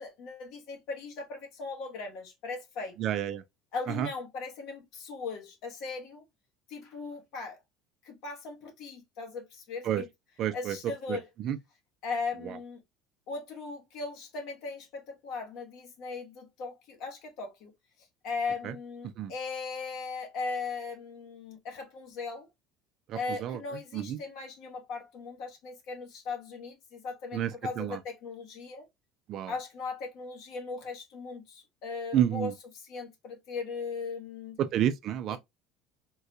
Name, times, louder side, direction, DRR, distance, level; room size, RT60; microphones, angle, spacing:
voice 1, 0.0-3.0 3.7-6.2 6.7-7.6 8.0-10.1 10.5-11.3 12.0-12.8 13.3-17.7 18.2-22.5 23.1-28.9 29.5-34.6 35.3-35.4, left 4 dB, 55° left, 1.1 m, -38 dB
voice 2, 3.0-3.4 3.9-4.1 9.8-10.0 10.4-10.8 11.1-11.6 18.6-18.7 19.2-19.3 23.1-23.6 23.9-24.2 27.3-27.5 27.8-28.0 29.3-29.5 32.1-32.5 34.6-35.4, right 10 dB, 40° right, 0.4 m, -29 dB
3.7 x 2.2 x 2.7 m
cardioid pair, 170°, 0 cm